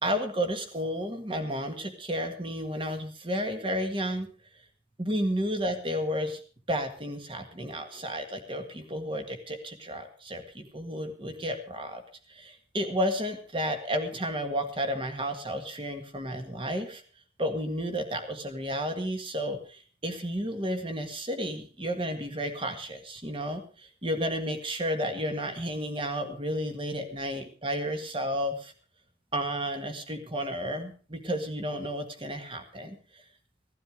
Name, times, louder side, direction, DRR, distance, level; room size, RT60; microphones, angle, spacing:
voice 1, 0.0-4.3 5.0-6.4 6.7-12.0 12.3-17.0 17.4-28.7 29.3-33.0, equal, 30° right, 6 dB, 1.8 m, -32 dB
16.5 x 12.0 x 5.0 m, 0.38 s
head